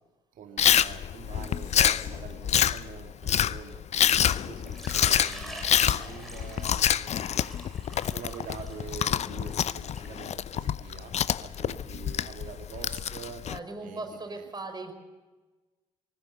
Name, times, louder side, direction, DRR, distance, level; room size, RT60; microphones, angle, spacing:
voice 1, 0.3-7.3 7.8-13.5 13.8-14.0 14.3-14.4, right 7 dB, 55° right, 6 dB, 2.3 m, -45 dB
Chewing mastication, 0.6-13.6, left 9 dB, 40° left, 0.7 m, -27 dB
sound 1, 1.1-2.1, left 6 dB, 70° left, 7.2 m, -51 dB
Water / Liquid, 4.7-10.2, right 1 dB, ahead, 7.9 m, -45 dB
voice 2, 13.5-14.9, right 2 dB, 25° right, 6 dB, 5.0 m, -38 dB
23.5 x 19.5 x 6.7 m, 1.2 s
figure-of-eight pair, 45°, 16 cm